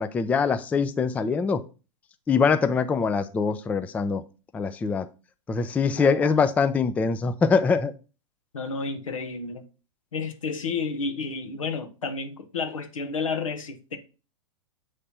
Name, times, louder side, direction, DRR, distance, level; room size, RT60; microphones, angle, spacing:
voice 1, 0.0-1.6 2.3-4.2 4.5-5.1 5.5-7.9, left 5 dB, 10° left, 0.3 m, -23 dB
voice 2, 6.0-6.5 8.5-9.6 10.1-14.0, left 4 dB, 80° left, 1.1 m, -31 dB
7.4 x 3.3 x 4.2 m
hypercardioid pair, 110°, 17 cm